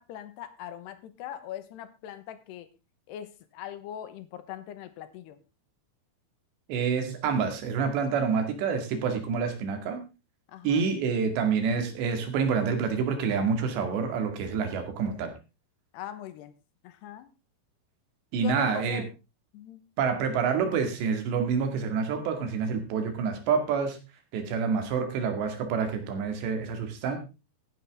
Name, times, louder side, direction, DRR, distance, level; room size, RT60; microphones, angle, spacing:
voice 1, 0.0-2.7 3.1-5.4 10.5-10.9 15.9-16.5 16.8-17.3 18.4-19.1 19.5-19.8, left 11 dB, 80° left, 11 dB, 3.2 m, -41 dB
voice 2, 6.7-10.0 10.6-15.3 18.3-19.0 20.0-24.0 24.3-27.2, right 6 dB, 85° right, 6 dB, 4.4 m, -27 dB
15.5 x 10.0 x 3.6 m, 0.29 s
omnidirectional pair, 4.9 m